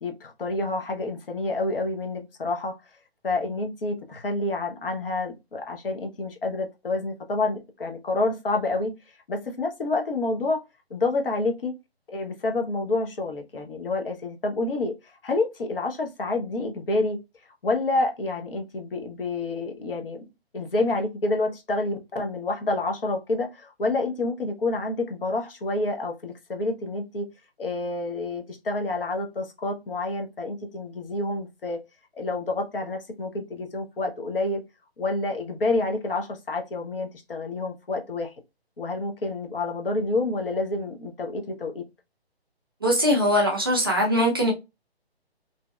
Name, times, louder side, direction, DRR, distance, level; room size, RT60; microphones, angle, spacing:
voice 1, 0.0-2.8 3.2-8.9 9.3-10.6 10.9-11.7 12.1-14.9 15.2-17.2 17.6-20.2 20.5-27.3 27.6-31.8 32.2-34.6 35.0-38.3 38.8-41.8, left 2 dB, 60° left, 0.7 m, -28 dB
voice 2, 42.8-44.5, equal, 25° right, 0.4 m, -21 dB
2.6 x 2.1 x 2.3 m
figure-of-eight pair, 140°, 32 cm